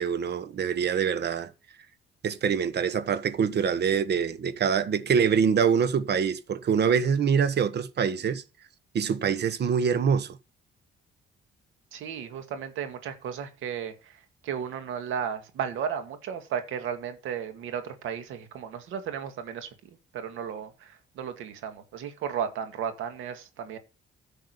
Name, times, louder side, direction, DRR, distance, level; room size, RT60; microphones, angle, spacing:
voice 1, 0.0-1.5 2.2-8.4 8.9-10.4, right 7 dB, 55° right, 1.3 m, -25 dB
voice 2, 11.9-19.7 20.1-23.8, right 8 dB, 85° right, 2.0 m, -34 dB
11.0 x 6.5 x 6.6 m
cardioid pair, 90°, 20 cm